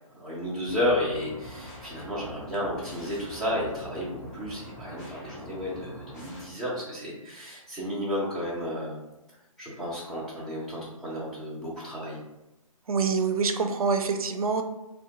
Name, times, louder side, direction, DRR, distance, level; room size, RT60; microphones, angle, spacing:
voice 1, 0.1-8.9 9.6-12.2, left 1 dB, ahead, -10 dB, 0.4 m, -32 dB
sound 1, 0.6-6.5, equal, 30° left, 0.7 m, -44 dB
voice 2, 12.9-14.6, right 5 dB, 90° right, 6 dB, 0.4 m, -25 dB
2.6 x 2.1 x 2.8 m, 1.0 s
hypercardioid pair, 155°, 18 cm